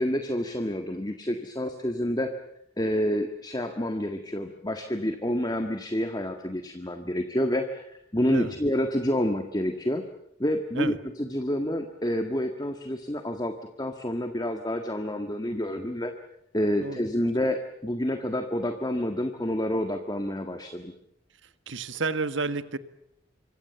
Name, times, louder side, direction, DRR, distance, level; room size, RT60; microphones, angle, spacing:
voice 1, 0.0-2.3 2.8-10.0 10.4-16.1 16.5-20.9, left 1 dB, 20° left, 6 dB, 1.7 m, -28 dB
voice 2, 21.4-22.8, right 3 dB, 70° right, 12 dB, 1.6 m, -31 dB
26.5 x 25.0 x 7.1 m, 0.78 s
head